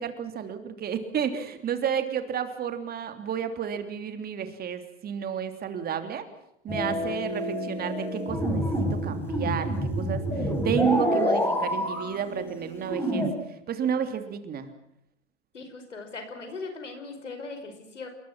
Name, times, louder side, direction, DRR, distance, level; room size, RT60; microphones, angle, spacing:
voice 1, 0.0-6.2 6.6-14.7, right 8 dB, 25° right, 8 dB, 3.2 m, -31 dB
sound 1, 6.7-13.3, equal, 5° left, 6.6 m, -28 dB
voice 2, 15.5-18.1, left 3 dB, 85° left, 6 dB, 5.2 m, -39 dB
28.0 x 22.0 x 6.1 m, 0.78 s
hypercardioid pair, 105°, 36 cm